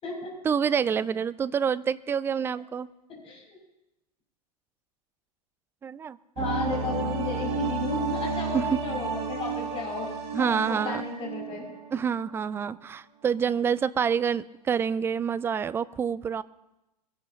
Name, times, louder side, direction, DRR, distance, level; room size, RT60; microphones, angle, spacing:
voice 1, 0.4-2.9 5.8-6.2 8.5-8.8 10.3-11.0 11.9-16.4, right 7 dB, 10° right, 17 dB, 0.3 m, -27 dB
voice 2, 3.2-3.6 6.4-10.1 10.4-11.7, left 3 dB, 25° left, -2 dB, 6.2 m, -34 dB
sound 1, 6.4-12.0 12.3-12.4, right 4 dB, 30° right, 2.0 m, -32 dB
23.0 x 11.0 x 2.8 m, 0.95 s
figure-of-eight pair, 90°, 21 cm